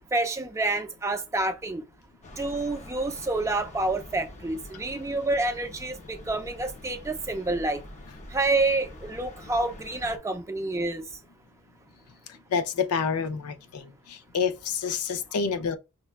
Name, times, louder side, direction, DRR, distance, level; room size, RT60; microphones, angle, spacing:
voice 1, 0.1-1.8 2.4-7.8 8.3-11.0, right 2 dB, 15° right, 0.4 m, -28 dB
sound 1, 2.2-10.2, left 1 dB, 35° left, 0.6 m, -45 dB
voice 2, 12.5-15.8, left 6 dB, 90° left, 0.4 m, -28 dB
5.9 x 2.2 x 2.3 m
head